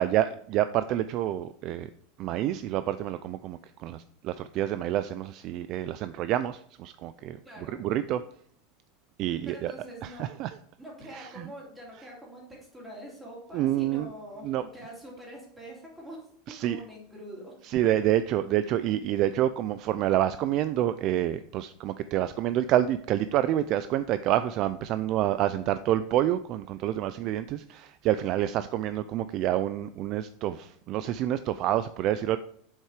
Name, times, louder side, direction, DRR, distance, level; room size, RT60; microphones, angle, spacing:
voice 1, 0.0-1.9 2.2-7.4 7.7-8.2 9.2-9.7 10.0-10.5 11.1-11.5 13.5-14.1 14.4-14.6 16.5-16.8 17.6-32.4, right 12 dB, 35° right, 13 dB, 0.3 m, -28 dB
voice 2, 7.4-7.8 9.5-10.3 10.8-17.5, right 1 dB, 5° right, -3 dB, 3.1 m, -45 dB
7.9 x 7.4 x 4.9 m, 0.63 s
supercardioid pair, 165°, 0 cm